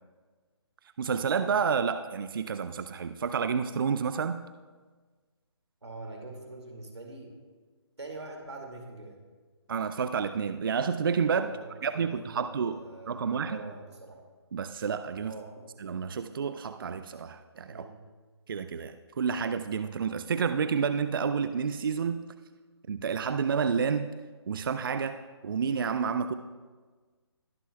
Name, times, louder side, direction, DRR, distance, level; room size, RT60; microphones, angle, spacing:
voice 1, 1.0-4.4 9.7-12.8 13.1-13.6 14.5-15.3 15.8-17.9 18.5-22.2 22.9-24.1 24.5-26.3, right 6 dB, 50° right, 10 dB, 0.4 m, -30 dB
voice 2, 5.8-7.3 8.0-9.2 11.4-14.2 15.2-15.5 17.7-17.9, right 2 dB, 75° right, 1 dB, 2.2 m, -44 dB
21.0 x 7.2 x 2.3 m, 1.4 s
figure-of-eight pair, 145°, 14 cm